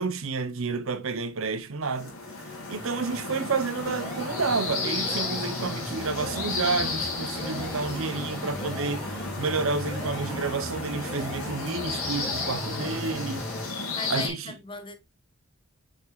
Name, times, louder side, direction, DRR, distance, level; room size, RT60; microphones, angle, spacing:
voice 1, 0.0-2.1 2.7-9.0 9.4-13.5 14.1-14.5, right 4 dB, 65° right, 0.8 m, -30 dB
sound 1, 1.8-14.3, left 3 dB, 70° left, 3.0 m, -33 dB
sound 2, 3.8-4.7 5.0-5.9 6.2-7.0 7.4-8.2 8.6-9.4 9.8-10.7 11.0-11.9 12.2-13.0, equal, 15° right, 2.4 m, -43 dB
sound 3, 4.3-13.7, equal, 5° left, 0.4 m, -39 dB
voice 2, 13.9-14.9, left 3 dB, 20° left, 1.0 m, -37 dB
6.4 x 6.2 x 2.4 m
head